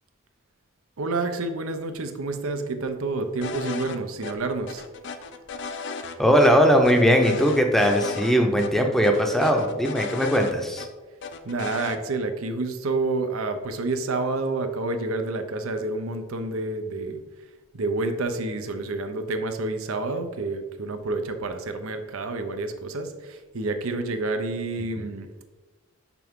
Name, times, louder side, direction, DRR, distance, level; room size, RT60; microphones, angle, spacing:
voice 1, 1.0-4.8 11.4-17.2 17.7-25.4, right 3 dB, 80° right, 8 dB, 0.7 m, -29 dB
sound 1, 3.4-4.0 4.2-4.3 4.7-6.2 6.4-6.5 6.8-8.3 8.6-8.7 9.0-10.9 11.2-12.0, left 4 dB, 55° left, 0.5 m, -35 dB
voice 2, 6.2-10.8, equal, ahead, 3 dB, 0.6 m, -19 dB
6.0 x 5.8 x 3.6 m, 1.2 s
head